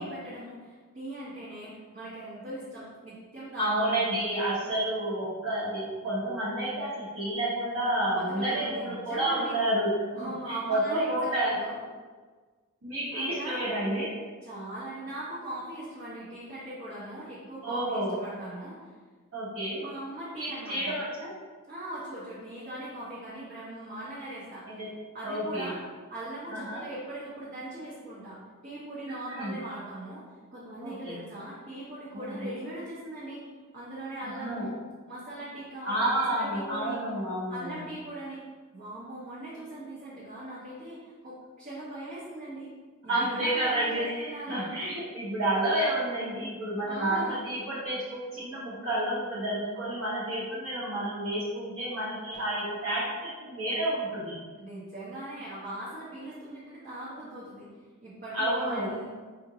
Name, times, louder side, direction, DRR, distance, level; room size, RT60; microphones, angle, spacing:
voice 1, 0.0-4.2 8.1-9.6 10.1-11.7 13.1-13.7 14.4-18.9 19.8-20.9 21.7-24.8 25.1-25.8 26.1-30.2 30.5-33.4 33.7-34.7 35.1-37.0 37.5-38.4 38.7-42.7 43.0-44.7 46.9-47.4 54.6-57.7 58.0-59.1, right 1 dB, 40° right, -10 dB, 0.9 m, -40 dB
voice 2, 3.6-11.6 12.8-14.1 17.6-18.1 19.3-19.8 20.4-21.3 24.7-24.9 25.2-25.7 26.5-26.8 29.1-29.5 30.8-31.2 32.1-32.5 34.2-34.6 35.8-37.7 43.1-53.0 53.4-54.4 58.3-58.9, right 1 dB, 60° right, -9 dB, 1.1 m, -30 dB
4.3 x 2.5 x 2.8 m, 1.4 s
head